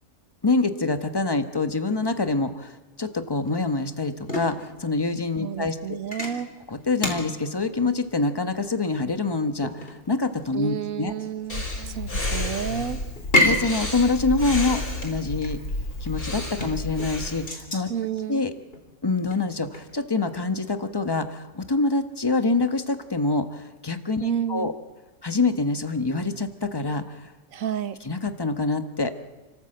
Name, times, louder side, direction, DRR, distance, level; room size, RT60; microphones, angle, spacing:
voice 1, 0.4-6.0 6.7-11.1 13.4-15.6 16.0-17.9 18.3-18.5 19.0-24.7 25.2-27.3 28.0-29.1, left 3 dB, 20° left, 8 dB, 1.0 m, -26 dB
sound 1, 3.4-20.0, left 2 dB, 40° left, 3.5 m, -31 dB
voice 2, 5.4-6.5 10.5-13.0 17.9-18.4 24.2-24.7 27.5-28.0, right 9 dB, 70° right, 12 dB, 1.4 m, -30 dB
Breathing, 11.5-17.5, left 2 dB, 85° left, 6.0 m, -31 dB
29.0 x 13.5 x 7.8 m, 1.2 s
omnidirectional pair, 1.5 m